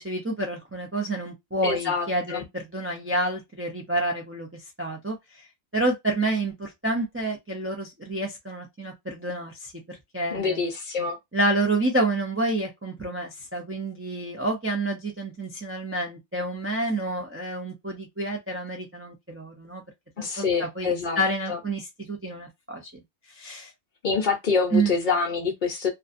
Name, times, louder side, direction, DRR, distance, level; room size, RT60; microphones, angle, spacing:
voice 1, 0.0-5.2 5.7-10.6 11.3-19.8 20.2-22.9 23.3-23.7 24.7-24.9, right 2 dB, 20° right, 0.3 m, -29 dB
voice 2, 1.6-2.4 10.3-11.2 20.2-21.2 21.5-21.6 24.0-25.9, left 5 dB, 55° left, 0.7 m, -26 dB
2.5 x 2.2 x 2.5 m
omnidirectional pair, 1.1 m